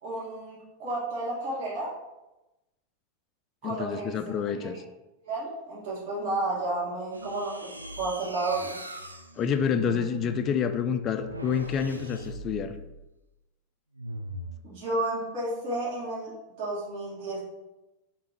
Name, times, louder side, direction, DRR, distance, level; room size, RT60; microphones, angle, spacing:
voice 1, 0.0-1.9 3.6-4.7 5.2-7.7 8.0-8.8 14.6-16.3 16.6-17.4, right 2 dB, 45° right, -7 dB, 1.5 m, -32 dB
voice 2, 3.6-4.8 9.4-12.8, left 7 dB, 30° left, 8 dB, 0.4 m, -28 dB
sound 1, 7.1-13.1 13.9-14.6, right 1 dB, 85° right, 0.4 m, -40 dB
3.5 x 2.9 x 4.8 m, 0.97 s
figure-of-eight pair, 90°, 0 cm